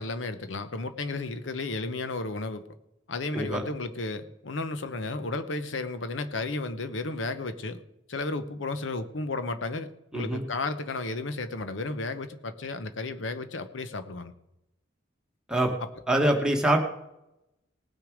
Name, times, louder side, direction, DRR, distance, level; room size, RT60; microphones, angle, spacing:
voice 1, 0.0-2.6 3.1-7.8 8.1-14.3, left 3 dB, 70° left, 10 dB, 0.9 m, -33 dB
voice 2, 16.1-16.8, right 1 dB, 5° right, 1 dB, 1.2 m, -24 dB
19.0 x 6.4 x 5.0 m, 0.87 s
head